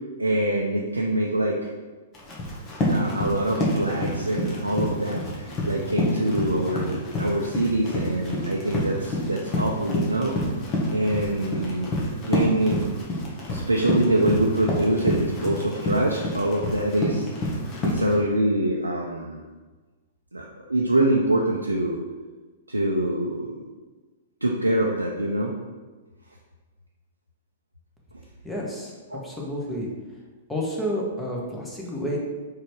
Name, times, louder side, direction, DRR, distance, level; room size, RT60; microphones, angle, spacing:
voice 1, 0.2-1.6 2.9-10.4 10.9-12.0 12.2-12.8 13.5-17.3 17.8-19.4 20.3-22.0 22.7-23.7 24.4-25.5 29.1-29.2, right 1 dB, 85° right, -1 dB, 0.7 m, -25 dB
Run, 2.1-18.1, left 1 dB, 30° left, 1.7 m, -28 dB
voice 2, 28.4-28.9 29.2-29.9 30.5-32.2, equal, 5° left, -3 dB, 1.6 m, -30 dB
4.9 x 4.8 x 4.6 m, 1.3 s
figure-of-eight pair, 110°, 0 cm